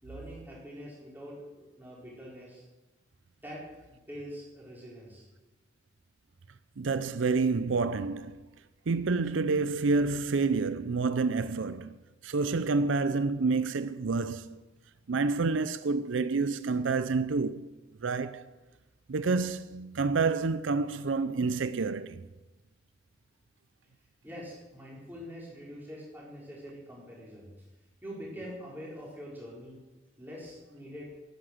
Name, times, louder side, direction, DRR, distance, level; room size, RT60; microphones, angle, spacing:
voice 1, 0.0-2.6 3.4-3.6 3.9-5.3 24.2-27.5 28.0-29.8 30.2-31.1, equal, 10° right, 4.8 m, -44 dB
voice 2, 6.8-8.4 8.9-12.0 12.2-14.6 15.1-17.7 18.0-18.5 19.1-22.3, right 4 dB, 90° right, 0.5 m, -28 dB
11.5 x 9.9 x 7.9 m
head